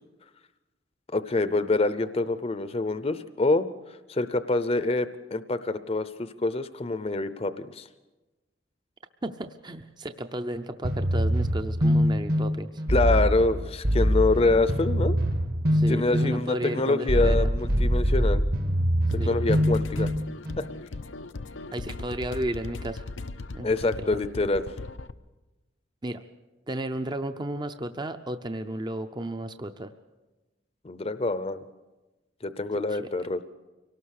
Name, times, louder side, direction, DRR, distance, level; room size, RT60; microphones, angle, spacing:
voice 1, 1.1-3.7 4.1-7.9 12.9-15.2 15.9-18.4 19.1-20.1 20.6-20.7 23.6-24.6 30.8-31.7 32.4-33.4, left 2 dB, 30° left, 13 dB, 0.7 m, -26 dB
voice 2, 9.2-12.8 15.7-17.5 19.2-19.4 21.7-23.0 23.5-23.7 24.0-24.2 26.0-26.2 26.7-29.9 32.9-33.1, right 1 dB, 25° right, 8 dB, 0.6 m, -33 dB
sound 1, 10.8-20.6, equal, 55° right, 1.4 m, -24 dB
sound 2, 19.0-25.1, left 3 dB, 85° left, 0.7 m, -38 dB
24.0 x 18.0 x 6.5 m, 1.1 s
head